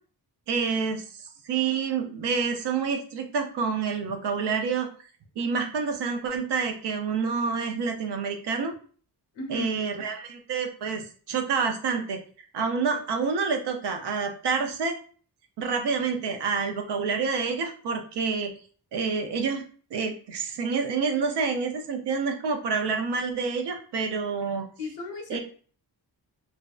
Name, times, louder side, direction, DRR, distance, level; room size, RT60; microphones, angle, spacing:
voice 1, 0.5-4.9 5.4-8.7 9.5-12.2 12.5-15.0 15.6-18.5 18.9-19.6 19.9-24.6 25.3-25.4, right 5 dB, 75° right, 5 dB, 0.6 m, -28 dB
voice 2, 9.3-9.7 24.8-25.4, left 3 dB, 85° left, 3 dB, 0.7 m, -35 dB
2.5 x 2.1 x 2.3 m, 0.43 s
cardioid pair, 85°, 41 cm